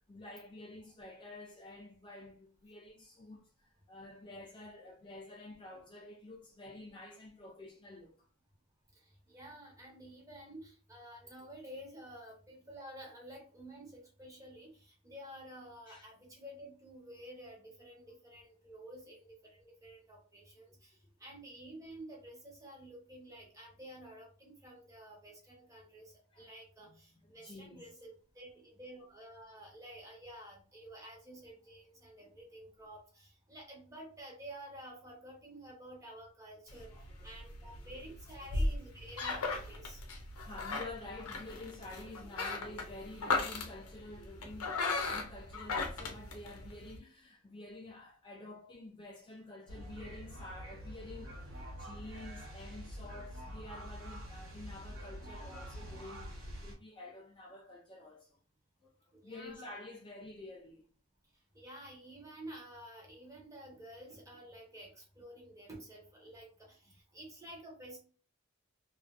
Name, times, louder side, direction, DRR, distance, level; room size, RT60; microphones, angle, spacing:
voice 1, 0.0-8.3 15.9-16.0 20.7-20.8 26.3-26.5 26.9-28.0 32.2-32.3 36.9-37.4 37.8-38.0 38.4-38.7 40.3-58.4 58.8-58.9 59.2-60.9, left 2 dB, 25° left, 0.3 m, -50 dB
voice 2, 8.9-36.9 37.2-40.0 59.1-59.7 61.5-68.0, right 1 dB, 15° right, 0.8 m, -51 dB
sound 1, 36.7-47.0, left 3 dB, 85° left, 0.6 m, -37 dB
sound 2, 49.7-56.7, equal, 65° right, 1.2 m, -46 dB
2.4 x 2.4 x 2.2 m
head